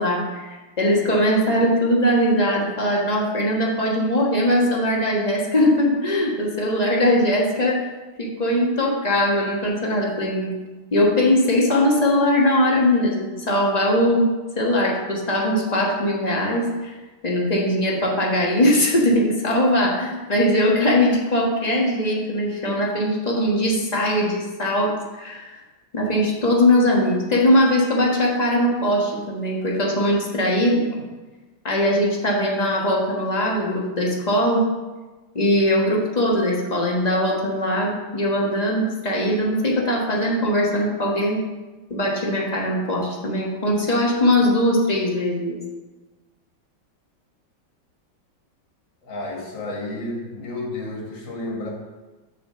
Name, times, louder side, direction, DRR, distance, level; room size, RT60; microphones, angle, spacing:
voice 1, 0.0-7.9 8.2-10.5 10.9-14.3 14.6-16.9 17.2-25.5 25.9-31.0 31.6-34.6 35.3-41.4 41.9-45.6, left 1 dB, 25° left, -2 dB, 1.2 m, -20 dB
voice 2, 49.0-51.7, left 2 dB, 65° left, -1 dB, 2.1 m, -31 dB
6.7 x 4.7 x 6.7 m, 1.2 s
omnidirectional pair, 2.2 m